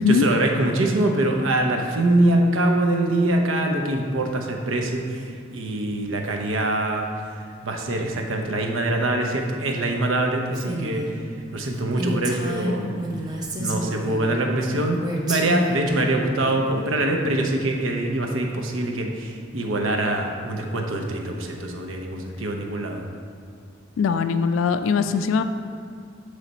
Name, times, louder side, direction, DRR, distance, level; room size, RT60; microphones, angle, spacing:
voice 1, 0.0-7.1 7.6-11.1 11.5-12.9 13.6-23.1, right 1 dB, 85° right, 3 dB, 0.7 m, -24 dB
Female speech woman speaking, 10.5-11.1 11.6-11.7 12.0-14.3 15.0-15.9, right 1 dB, 20° right, 0.6 m, -29 dB
voice 2, 24.0-25.4, left 5 dB, 80° left, 11 dB, 0.3 m, -21 dB
7.4 x 3.2 x 4.0 m, 2.4 s
head